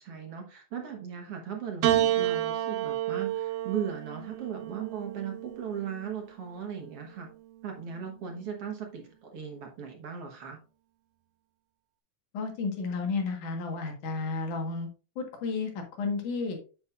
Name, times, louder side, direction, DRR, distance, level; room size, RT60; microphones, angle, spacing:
voice 1, 0.0-7.3 7.6-10.6, right 7 dB, 55° right, 2 dB, 1.9 m, -37 dB
Piano, 1.8-6.3 7.3-8.1, right 13 dB, 85° right, 2.4 m, -30 dB
voice 2, 12.3-14.9 15.2-16.6, left 4 dB, 85° left, 3 dB, 3.1 m, -32 dB
8.3 x 7.7 x 2.5 m, 0.34 s
omnidirectional pair, 3.5 m